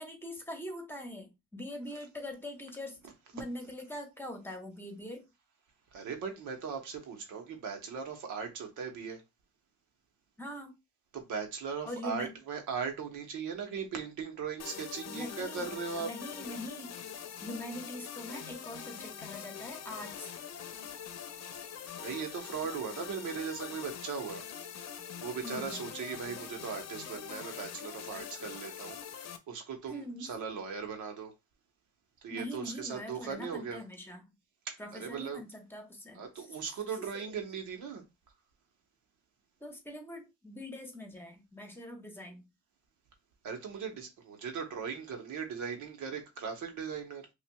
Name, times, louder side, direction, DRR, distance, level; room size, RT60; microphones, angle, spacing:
voice 1, 0.0-3.1 3.3-5.3 10.4-10.7 11.8-12.3 15.1-16.9 17.4-20.3 25.4-25.9 28.1-28.5 29.9-30.3 32.3-34.3 34.8-36.6 37.0-37.2 39.6-42.4, left 1 dB, 5° left, 1.2 m, -43 dB
voice 2, 5.9-9.2 11.1-16.1 21.9-24.4 25.2-31.3 32.2-33.8 34.7-35.4 36.1-38.0 43.4-47.2, right 6 dB, 80° right, 1.1 m, -38 dB
sound 1, 14.6-29.4, left 8 dB, 60° left, 0.7 m, -44 dB
5.5 x 2.4 x 2.3 m
cardioid pair, 90°, 30 cm